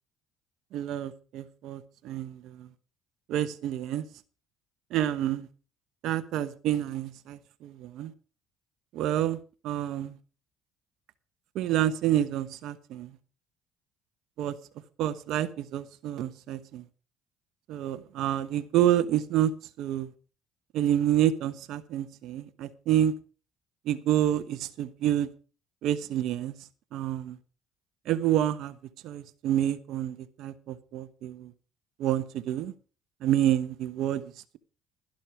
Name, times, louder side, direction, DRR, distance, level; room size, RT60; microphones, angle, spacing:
voice 1, 0.7-2.7 3.3-4.0 4.9-5.5 6.0-8.1 8.9-9.4 9.6-10.1 11.5-13.1 14.4-14.5 15.0-16.8 17.7-19.5 19.8-20.1 20.7-23.1 23.9-25.3 25.8-26.5 26.9-27.4 28.1-28.8 29.0-31.5 32.0-32.7 33.2-34.2, right 11 dB, 70° right, 1.1 m, -28 dB
12.0 x 11.5 x 4.9 m
supercardioid pair, 95°, 0 cm